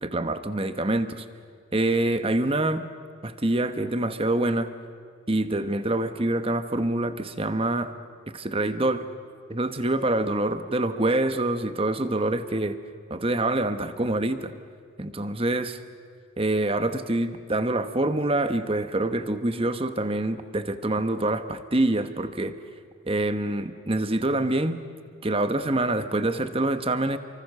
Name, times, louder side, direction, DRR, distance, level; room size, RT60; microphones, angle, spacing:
voice 1, 0.0-1.2 1.7-2.8 3.2-4.7 5.3-7.9 8.3-9.1 9.5-12.8 13.1-14.5 15.0-15.8 16.4-22.6 23.1-24.8 25.2-27.2, right 2 dB, 25° right, 10 dB, 1.1 m, -26 dB
29.5 x 24.5 x 6.8 m, 2.3 s
head